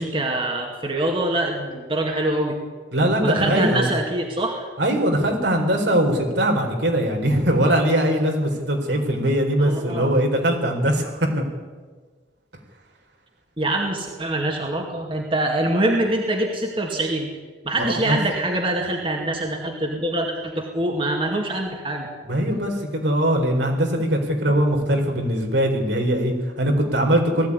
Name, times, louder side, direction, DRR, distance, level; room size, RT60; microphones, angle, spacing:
voice 1, 0.0-2.6 3.2-4.7 9.6-10.1 13.6-17.3 17.6-22.1, right 1 dB, 30° right, 1 dB, 2.3 m, -24 dB
voice 2, 2.9-3.9 4.8-11.3 17.8-18.2 22.3-27.5, right 1 dB, 70° right, 2 dB, 4.3 m, -21 dB
19.0 x 15.5 x 10.0 m, 1.4 s
head